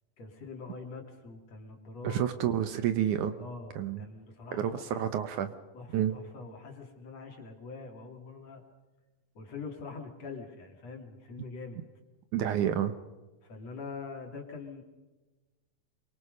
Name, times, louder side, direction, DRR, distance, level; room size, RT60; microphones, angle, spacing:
voice 1, 0.2-2.2 2.6-2.8 3.4-5.1 5.7-8.6 9.4-11.8 13.4-14.8, left 4 dB, 50° left, 3 dB, 3.9 m, -44 dB
voice 2, 2.0-3.3 3.8-4.1 4.6-5.5 5.9-6.1 12.3-12.9, right 10 dB, 70° right, 10 dB, 2.2 m, -29 dB
27.5 x 23.5 x 5.4 m, 1.2 s
omnidirectional pair, 4.0 m